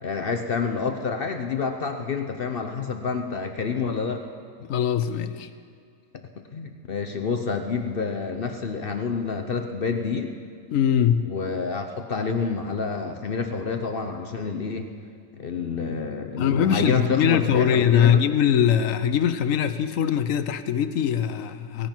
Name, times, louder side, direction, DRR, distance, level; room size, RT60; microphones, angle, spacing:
voice 1, 0.0-4.2 6.5-10.4 11.3-14.9 15.3-18.2, left 5 dB, 50° left, 6 dB, 0.8 m, -28 dB
voice 2, 4.7-5.5 10.7-11.2 16.4-21.9, left 8 dB, 70° left, 11 dB, 1.1 m, -22 dB
17.0 x 16.0 x 4.4 m, 2.2 s
omnidirectional pair, 1.5 m